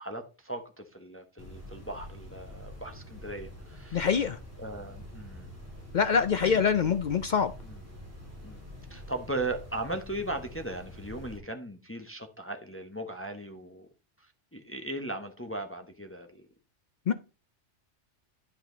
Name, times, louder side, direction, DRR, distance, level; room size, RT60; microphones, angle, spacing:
voice 1, 0.0-4.3 4.6-5.5 6.1-7.0 7.6-7.8 8.4-8.6 8.9-13.9 14.2-16.4, right 2 dB, 10° left, 0.9 m, -38 dB
sound 1, 1.4-11.4, left 1 dB, 10° right, 3.4 m, -46 dB
voice 2, 3.9-4.4 5.9-7.5 17.1-17.2, left 6 dB, 60° left, 0.5 m, -25 dB
10.0 x 5.8 x 3.8 m
omnidirectional pair, 1.3 m